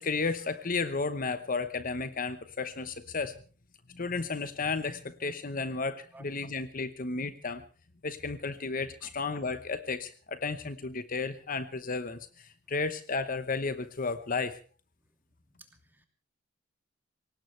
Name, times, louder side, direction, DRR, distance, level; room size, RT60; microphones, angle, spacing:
voice 1, 0.0-3.3 3.9-7.6 8.0-14.6, left 4 dB, 45° left, 11 dB, 1.0 m, -33 dB
voice 2, 15.6-16.1, right 2 dB, 10° right, 5 dB, 2.8 m, -54 dB
23.5 x 18.5 x 3.3 m, 0.40 s
head